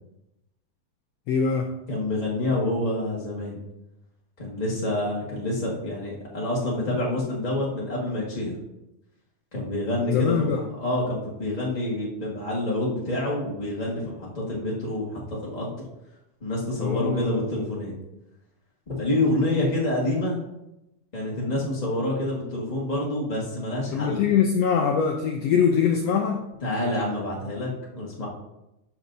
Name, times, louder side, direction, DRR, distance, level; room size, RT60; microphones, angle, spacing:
voice 1, 1.3-1.7 10.1-10.6 16.8-17.4 23.9-26.4, left 7 dB, 80° left, 2 dB, 1.4 m, -23 dB
voice 2, 1.9-3.6 4.4-8.5 9.5-15.7 16.4-17.9 18.9-20.4 21.1-24.3 26.6-28.3, left 1 dB, 40° left, -5 dB, 0.6 m, -27 dB
12.5 x 6.0 x 2.6 m, 0.90 s
omnidirectional pair, 3.6 m